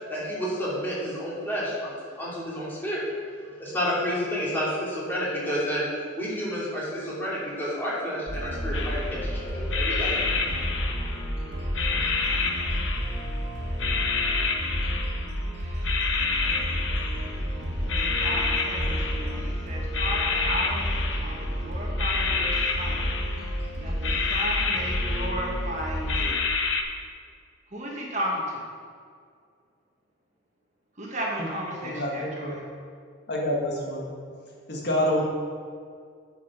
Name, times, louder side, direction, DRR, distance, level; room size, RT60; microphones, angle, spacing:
voice 1, 0.1-1.9 2.2-3.0 3.6-5.9 6.2-10.2, equal, 10° left, -7 dB, 2.8 m, -30 dB
sound 1, 8.3-26.3, equal, 60° right, 1.7 m, -30 dB
sound 2, 8.7-9.3 9.7-11.4 11.7-13.4 13.8-15.4 15.8-17.5 17.9-19.6 19.9-21.6 22.0-23.6 24.0-25.7 26.1-26.8, left 5 dB, 70° left, 0.9 m, -29 dB
voice 2, 12.3-12.6 15.5-16.1 18.0-23.1 23.8-26.4 27.7-28.4 31.0-32.5, equal, 35° right, -2 dB, 1.5 m, -34 dB
voice 3, 31.8-32.6 33.3-34.1 34.7-35.2, equal, 55° left, -2 dB, 1.6 m, -27 dB
9.3 x 6.2 x 6.1 m, 2.1 s
head